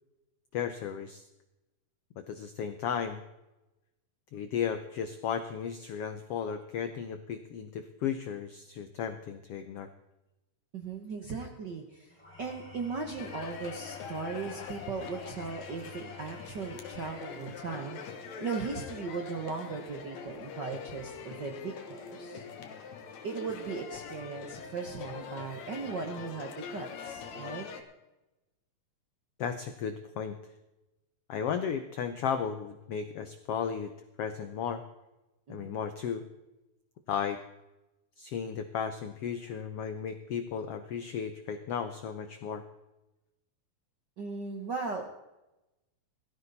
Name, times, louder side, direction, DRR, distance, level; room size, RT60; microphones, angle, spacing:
voice 1, 0.5-1.2 2.2-3.2 4.3-9.9 29.4-30.4 31.3-33.9 34.2-34.8 35.5-36.2 37.1-37.4 38.2-42.6, left 7 dB, 85° left, 9 dB, 1.3 m, -34 dB
voice 2, 10.7-22.4 23.2-27.7 35.5-35.8 44.2-45.2, right 4 dB, 60° right, 3 dB, 1.1 m, -38 dB
Engine / Tools, 12.1-18.5, left 4 dB, 5° left, 5.5 m, -51 dB
sound 1, 13.2-27.8, left 6 dB, 60° left, 2.5 m, -43 dB
17.5 x 14.0 x 4.1 m, 0.99 s
omnidirectional pair, 3.9 m